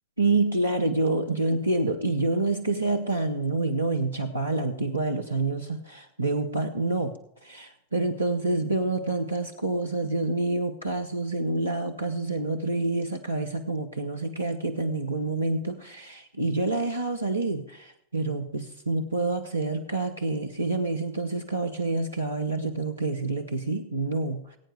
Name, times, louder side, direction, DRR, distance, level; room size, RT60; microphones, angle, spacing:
voice 1, 0.2-7.2 7.4-24.6, right 2 dB, 85° right, 3 dB, 0.9 m, -27 dB
20.0 x 8.9 x 3.5 m, 0.74 s
figure-of-eight pair, 90°, 0 cm